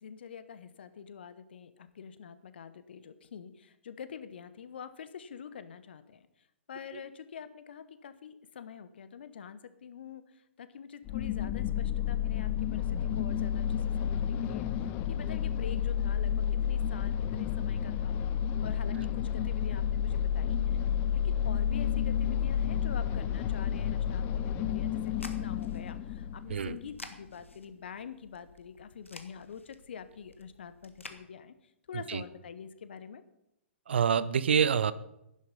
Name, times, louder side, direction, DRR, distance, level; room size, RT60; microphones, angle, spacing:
voice 1, 0.0-6.3 6.7-14.6 15.1-18.1 18.6-20.8 21.1-31.5 31.9-33.2, left 7 dB, 55° left, 13 dB, 1.1 m, -46 dB
sound 1, 11.1-27.0, left 9 dB, 25° left, 0.7 m, -31 dB
sound 2, 24.7-31.2, left 3 dB, 80° left, 1.5 m, -52 dB
voice 2, 33.9-34.9, right 7 dB, 60° right, 17 dB, 0.7 m, -27 dB
11.0 x 11.0 x 5.4 m, 0.82 s
figure-of-eight pair, 120°, 7 cm